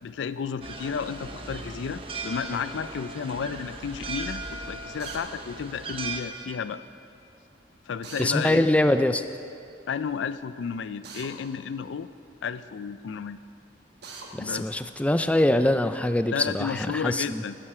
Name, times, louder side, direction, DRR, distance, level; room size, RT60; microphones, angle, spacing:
voice 1, 0.0-6.8 7.9-8.7 9.9-12.1 12.4-13.4 14.4-14.7 16.3-17.6, left 6 dB, 85° left, 14 dB, 0.4 m, -32 dB
sound 1, 0.6-6.2, right 3 dB, 30° right, 0.8 m, -37 dB
Drill, 5.0-5.2 8.0-8.3 11.0-11.3 14.0-14.3, right 4 dB, 60° right, 1.3 m, -41 dB
voice 2, 8.2-9.2 14.3-17.4, left 1 dB, 5° left, 9 dB, 0.3 m, -23 dB
11.0 x 8.8 x 6.0 m, 2.5 s
head